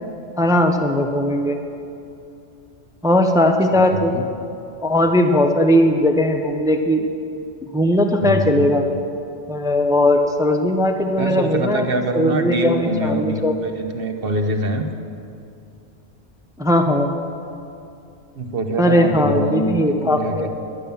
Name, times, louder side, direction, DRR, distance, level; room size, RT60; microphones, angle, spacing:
voice 1, 0.4-1.6 3.0-4.2 4.8-7.1 7.7-8.8 9.5-11.8 12.1-13.6 16.6-17.1 18.8-20.5, left 1 dB, 5° right, 5 dB, 0.6 m, -18 dB
voice 2, 3.9-4.2 8.2-8.7 11.2-14.9 18.3-19.8 20.0-20.5, right 1 dB, 60° right, 5 dB, 1.2 m, -24 dB
11.0 x 10.5 x 7.0 m, 2.6 s
omnidirectional pair, 1.1 m